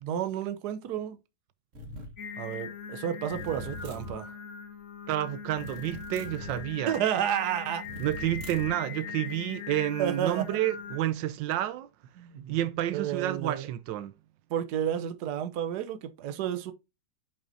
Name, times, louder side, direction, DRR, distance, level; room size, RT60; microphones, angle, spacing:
voice 1, 0.0-1.2 2.3-4.3 6.9-7.8 10.0-10.4 12.2-12.5 12.9-13.7 14.5-16.7, right 10 dB, 65° right, 1.3 m, -31 dB
sound 1, 1.7-2.2 3.3-4.2 5.6-6.7 7.8-8.8, right 1 dB, 45° right, 1.8 m, -42 dB
Singing, 2.2-11.0, left 7 dB, 50° left, 1.5 m, -41 dB
voice 2, 5.1-6.9 8.0-11.9 12.5-14.1, right 13 dB, 90° right, 1.3 m, -30 dB
8.7 x 5.4 x 2.6 m
omnidirectional pair, 1.9 m